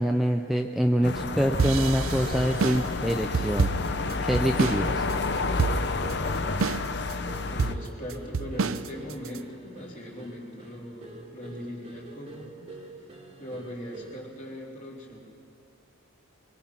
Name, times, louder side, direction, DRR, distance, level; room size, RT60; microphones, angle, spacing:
voice 1, 0.0-3.7 4.3-5.1, equal, ahead, 3 dB, 0.5 m, -25 dB
sound 1, 1.0-7.7, left 3 dB, 50° left, 0.7 m, -30 dB
sound 2, 1.0-14.3, right 2 dB, 30° right, 1.8 m, -47 dB
sound 3, 1.6-4.8 5.1-5.2 5.6-6.1 6.6-7.1 7.6-9.4, right 4 dB, 80° right, 0.5 m, -28 dB
voice 2, 7.4-12.5 12.9-13.1 13.4-15.2, equal, 35° left, -3 dB, 3.2 m, -40 dB
24.5 x 22.5 x 5.8 m, 2.6 s
head